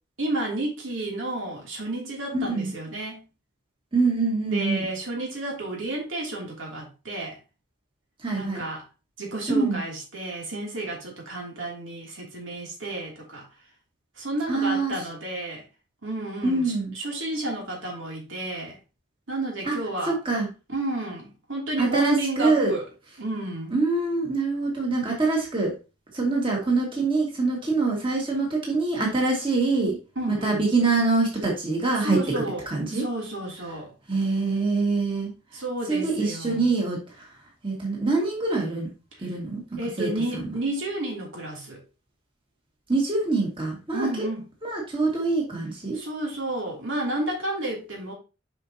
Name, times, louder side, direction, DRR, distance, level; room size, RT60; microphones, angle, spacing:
voice 1, 0.2-3.2 4.5-7.4 8.3-8.8 9.2-13.5 14.2-15.6 16.0-18.8 19.3-20.2 20.7-22.9 23.2-23.7 30.1-30.6 32.0-33.9 35.5-36.7 39.2-39.3 39.8-41.8 43.9-44.4 45.9-48.1, right 2 dB, 85° right, 2.9 m, -31 dB
voice 2, 2.3-2.7 3.9-4.8 8.2-8.6 9.5-9.8 14.5-14.9 16.4-16.9 19.7-19.8 20.1-20.5 21.8-22.7 23.7-25.7 26.1-30.0 30.4-32.2 32.7-33.0 34.1-35.3 35.9-37.0 37.6-38.9 39.2-40.4 42.9-44.3 44.6-46.0, right 3 dB, 25° right, 2.0 m, -24 dB
7.3 x 5.5 x 2.9 m
head